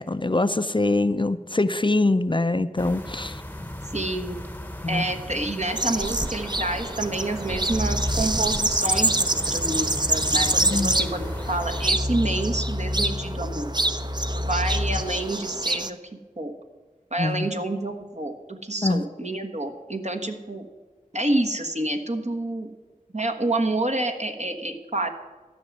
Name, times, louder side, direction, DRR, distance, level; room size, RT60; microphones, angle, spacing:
voice 1, 0.0-3.4 4.8-5.1 10.3-10.9 17.2-17.5 18.8-19.1, left 2 dB, 35° left, 11 dB, 0.5 m, -24 dB
sound 1, 2.8-11.9, left 1 dB, 10° left, 0.9 m, -36 dB
voice 2, 3.9-4.4 4.9-13.7 14.3-16.0 16.4-16.5 17.1-20.6 21.1-22.7 23.1-25.1, right 2 dB, 50° right, 4 dB, 1.4 m, -28 dB
sound 2, 5.7-15.9, right 2 dB, 30° right, 0.7 m, -26 dB
sound 3, 7.7-15.0, left 1 dB, 85° right, 2.5 m, -31 dB
13.0 x 6.1 x 9.4 m, 1.4 s
wide cardioid pair, 40°, 14 cm